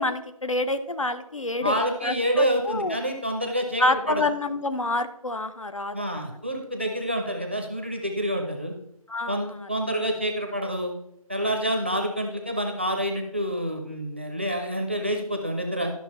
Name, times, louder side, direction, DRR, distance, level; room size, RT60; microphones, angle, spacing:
voice 1, 0.0-3.0 3.8-6.1 9.1-9.6, left 2 dB, 60° left, 10 dB, 0.9 m, -27 dB
voice 2, 1.6-4.2 5.9-8.7 9.3-10.9 11.3-15.9, equal, 20° right, 3 dB, 0.7 m, -27 dB
12.0 x 5.9 x 4.2 m, 0.81 s
figure-of-eight pair, 170°, 19 cm